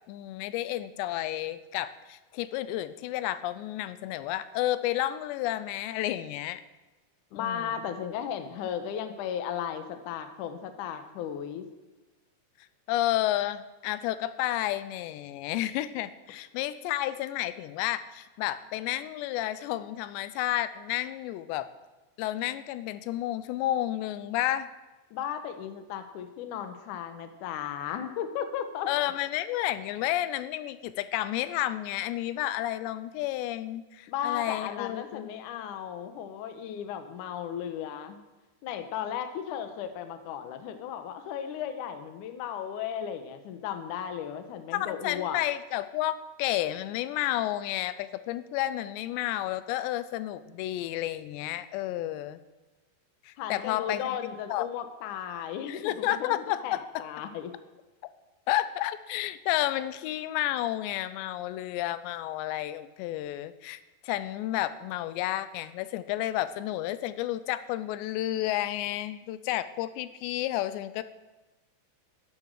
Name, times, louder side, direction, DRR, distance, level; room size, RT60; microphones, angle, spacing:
voice 1, 0.1-6.6 7.3-7.8 12.9-21.7 22.2-24.7 28.9-35.3 44.7-52.4 53.3-54.0 54.5-54.7 55.6-57.0 58.5-71.0, left 14 dB, 90° left, 14 dB, 2.9 m, -31 dB
voice 2, 7.3-11.7 25.1-28.9 34.1-38.2 38.6-45.4 53.4-56.3 56.6-57.5, left 9 dB, 70° left, 8 dB, 1.9 m, -35 dB
12.5 x 11.0 x 6.4 m, 1.1 s
omnidirectional pair, 5.0 m